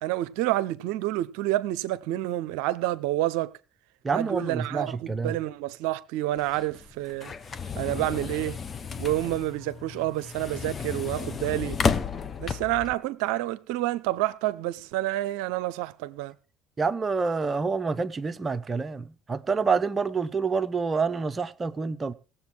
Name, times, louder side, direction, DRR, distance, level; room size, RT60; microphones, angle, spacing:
voice 1, 0.0-3.5 4.1-7.3 7.8-8.6 9.0-11.8 12.4-16.3, right 15 dB, 75° right, 0.6 m, -28 dB
voice 2, 4.0-5.3 16.8-22.1, right 4 dB, 30° right, 0.8 m, -27 dB
sound 1, 6.4-12.9, left 5 dB, 35° left, 1.0 m, -32 dB
18.0 x 7.7 x 4.4 m
hypercardioid pair, 65°, 0 cm